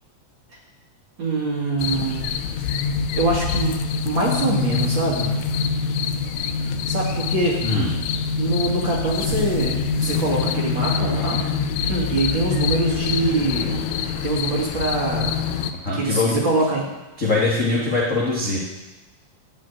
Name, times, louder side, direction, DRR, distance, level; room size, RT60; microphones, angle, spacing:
voice 1, 1.2-2.4 3.1-3.7 4.1-5.3 6.9-7.6 8.4-11.4 11.8-13.7 14.2-15.3 15.9-16.9, right 2 dB, 40° right, -3 dB, 2.4 m, -24 dB
sound 1, 1.8-15.7, left 5 dB, 80° left, 1.6 m, -25 dB
voice 2, 15.8-16.4 17.2-18.6, left 3 dB, 50° left, -4 dB, 0.9 m, -22 dB
11.5 x 5.0 x 8.5 m, 1.1 s
omnidirectional pair, 3.7 m